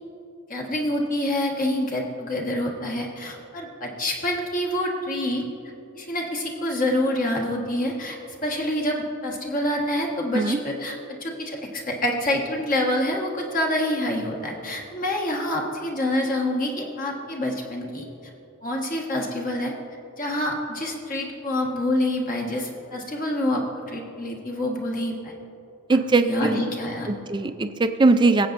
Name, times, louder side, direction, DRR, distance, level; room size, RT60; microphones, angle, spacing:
voice 1, 0.5-5.4 5.9-8.2 8.4-18.1 18.6-19.7 20.2-25.3 26.2-27.1, left 1 dB, 40° left, -1 dB, 1.4 m, -27 dB
voice 2, 25.9-26.7 27.1-28.5, right 3 dB, 20° right, 9 dB, 0.4 m, -20 dB
22.5 x 8.1 x 2.6 m, 2.9 s
head